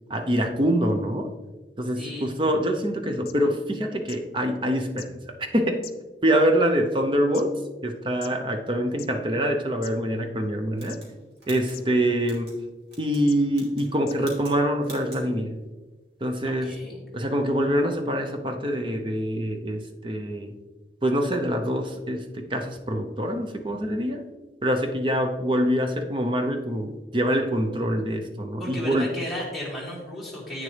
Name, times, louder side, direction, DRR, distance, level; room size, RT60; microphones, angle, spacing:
voice 1, 0.1-1.3 1.8-5.2 5.5-5.8 6.2-11.0 11.5-12.6 13.0-15.6 16.2-16.7 17.1-20.5 21.0-24.3 24.6-29.1, equal, 30° right, 5 dB, 0.6 m, -25 dB
voice 2, 2.0-2.4 16.4-17.1 28.6-30.6, equal, ahead, -6 dB, 2.0 m, -34 dB
sound 1, 2.9-3.0 3.3-3.4 4.1-4.2 5.0-5.1 5.8-6.3 7.0-7.4 8.2-8.3 8.9-9.1 9.8-9.9 10.9-11.2 11.7-11.8 12.6-12.7 13.3-13.4 14.0-14.2 15.0-15.1, left 11 dB, 55° left, 0.5 m, -42 dB
sound 2, 10.8-12.6 12.9-13.2 13.5-13.9 14.2-14.6 14.8-15.2, right 2 dB, 70° right, 2.4 m, -46 dB
8.7 x 6.9 x 3.3 m, 1.2 s
head